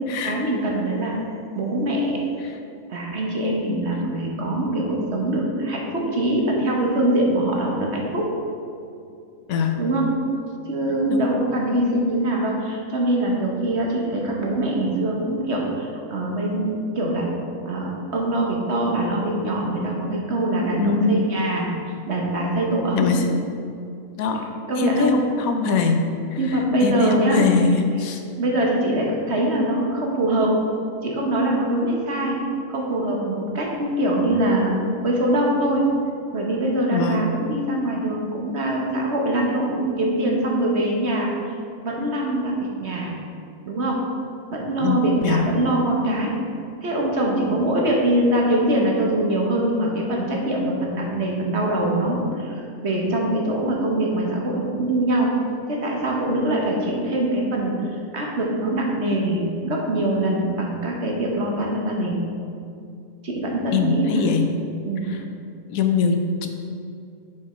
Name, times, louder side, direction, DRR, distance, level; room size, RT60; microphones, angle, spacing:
voice 1, 0.2-1.1 1.5-2.2 2.9-8.2 9.8-10.1 10.7-17.3 17.6-21.7 22.1-23.2 24.7-25.1 26.4-27.4 28.4-30.5 31.0-32.4 32.7-34.7 35.0-35.9 36.3-41.3 41.8-43.1 43.7-44.0 44.5-46.3 46.8-55.3 55.7-57.7 58.1-62.2 63.2-64.3 64.8-65.0, right 1 dB, 55° right, -1 dB, 1.4 m, -23 dB
voice 2, 20.8-21.3 22.9-23.3 24.2-24.4 24.8-26.0 26.3-28.2 36.9-37.2 44.8-45.4 63.7-64.5 65.1-65.2 65.7-66.5, left 5 dB, 80° left, 5 dB, 1.2 m, -22 dB
6.9 x 6.4 x 4.3 m, 2.5 s
omnidirectional pair, 1.4 m